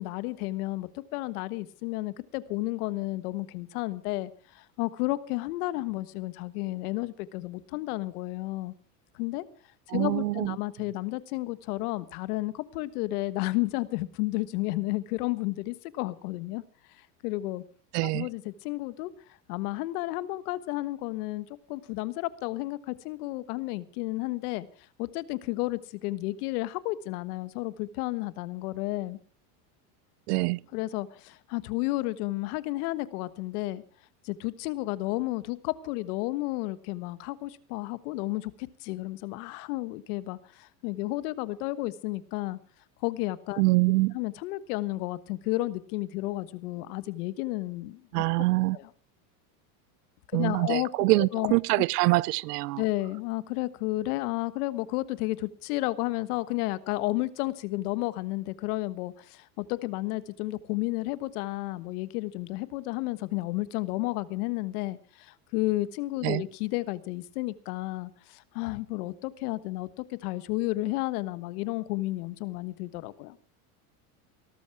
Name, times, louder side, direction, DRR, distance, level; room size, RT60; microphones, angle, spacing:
voice 1, 0.0-8.7 9.1-9.4 9.9-16.6 17.2-17.6 18.0-19.1 19.5-24.7 25.0-29.2 30.7-33.8 34.2-42.6 43.0-43.6 44.1-48.1 48.7-48.9 50.3-51.5 52.8-73.4, left 19 dB, 75° left, 1.4 m, -32 dB
voice 2, 9.9-10.6 17.9-18.3 30.3-30.6 43.6-44.1 48.1-48.8 50.3-52.8 66.2-66.4, right 22 dB, 85° right, 0.7 m, -25 dB
18.0 x 13.5 x 4.7 m
supercardioid pair, 130°, 46 cm